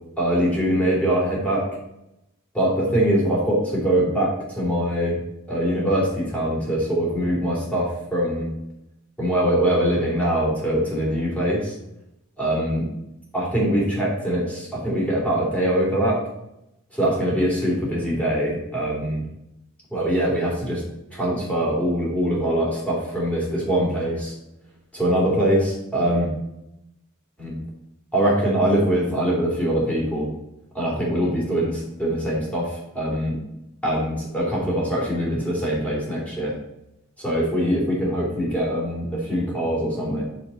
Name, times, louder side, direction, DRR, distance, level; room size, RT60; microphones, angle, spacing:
voice 1, 0.2-1.6 2.5-5.2 5.5-8.5 9.2-11.7 12.4-12.9 13.3-16.2 16.9-19.2 19.9-20.8 21.1-24.3 24.9-26.3 27.4-27.6 28.1-30.3 30.7-33.4 33.8-36.5 37.2-40.2, right 1 dB, 5° left, -5 dB, 3.3 m, -23 dB
7.1 x 6.9 x 4.3 m, 0.87 s
head